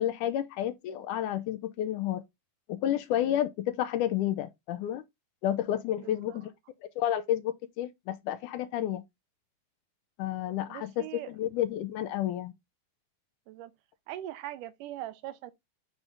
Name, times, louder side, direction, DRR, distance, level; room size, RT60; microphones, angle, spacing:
voice 1, 0.0-2.2 2.7-5.0 5.4-6.5 7.0-9.0 10.2-12.5, left 11 dB, 80° left, 2.2 m, -30 dB
voice 2, 6.0-6.5 10.7-11.4 13.5-13.7 14.1-15.5, right 13 dB, 80° right, 2.3 m, -41 dB
8.0 x 3.4 x 3.9 m
omnidirectional pair, 3.8 m